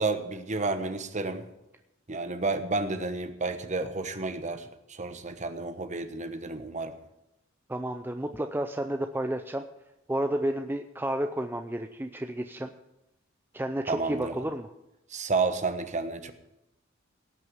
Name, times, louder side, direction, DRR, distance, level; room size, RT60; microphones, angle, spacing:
voice 1, 0.0-1.4 2.1-6.9 13.9-14.3 15.1-16.3, right 3 dB, 35° right, 9 dB, 1.1 m, -31 dB
voice 2, 7.7-9.6 10.1-12.7 13.5-14.7, right 1 dB, 10° right, 6 dB, 0.5 m, -31 dB
17.5 x 6.2 x 7.8 m, 0.91 s
head